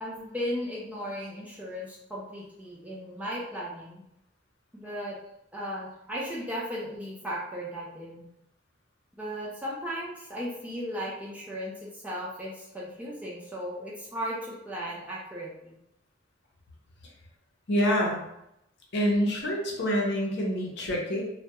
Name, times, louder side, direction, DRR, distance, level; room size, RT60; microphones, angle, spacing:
voice 1, 0.0-4.0 4.7-5.2 5.5-8.3 9.2-15.7, equal, 5° right, -5 dB, 0.4 m, -36 dB
voice 2, 17.7-18.2 18.9-21.2, equal, 55° left, -2 dB, 0.6 m, -26 dB
2.2 x 2.2 x 2.8 m, 0.83 s
head